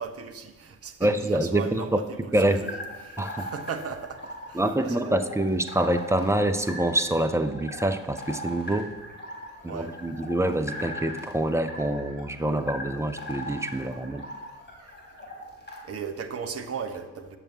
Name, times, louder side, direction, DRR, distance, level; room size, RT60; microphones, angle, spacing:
voice 1, 0.0-5.3 9.7-10.0 15.9-17.4, right 6 dB, 35° right, 6 dB, 1.1 m, -37 dB
voice 2, 1.0-2.0 2.3-2.6 3.2-3.5 4.5-8.9 9.6-14.2, right 1 dB, 5° right, 7 dB, 0.6 m, -26 dB
sound 1, 2.7-15.8, left 1 dB, 25° left, 3.2 m, -40 dB
17.0 x 6.7 x 2.9 m, 1.3 s
figure-of-eight pair, 45°, 43 cm